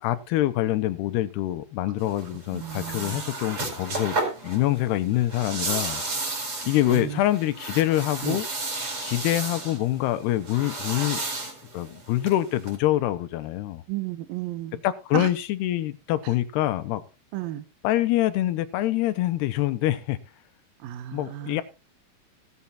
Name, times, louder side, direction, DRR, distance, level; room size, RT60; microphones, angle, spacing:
voice 1, 0.0-4.2 4.4-6.0 6.6-8.5 9.0-11.2 11.7-13.8 14.8-17.0 17.8-20.2 21.1-21.6, left 14 dB, 85° left, 3.0 m, -25 dB
sound 1, 2.0-12.7, right 2 dB, 35° right, 5.1 m, -33 dB
voice 2, 2.5-3.3 6.9-7.2 8.2-8.4 13.9-14.8 15.1-15.3 16.2-16.3 17.3-17.6 20.8-21.6, right 13 dB, 75° right, 2.5 m, -33 dB
16.0 x 8.3 x 4.2 m
omnidirectional pair, 4.6 m